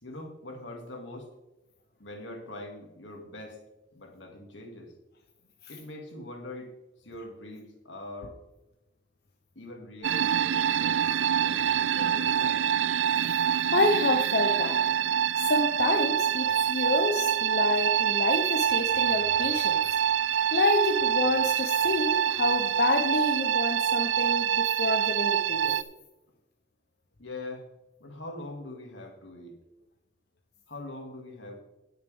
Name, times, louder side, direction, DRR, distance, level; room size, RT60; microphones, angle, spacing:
voice 1, 0.0-1.3 2.0-3.6 3.9-4.9 5.7-8.4 9.6-11.2 11.4-12.6 27.2-27.7 28.0-29.5 30.7-31.6, left 1 dB, 85° left, 2 dB, 2.3 m, -43 dB
sound 1, 10.0-25.8, right 9 dB, 90° right, 0.4 m, -26 dB
voice 2, 13.5-14.8 15.4-19.8 20.5-25.8, left 2 dB, 60° left, 3 dB, 0.8 m, -28 dB
17.5 x 6.6 x 3.5 m, 0.99 s
head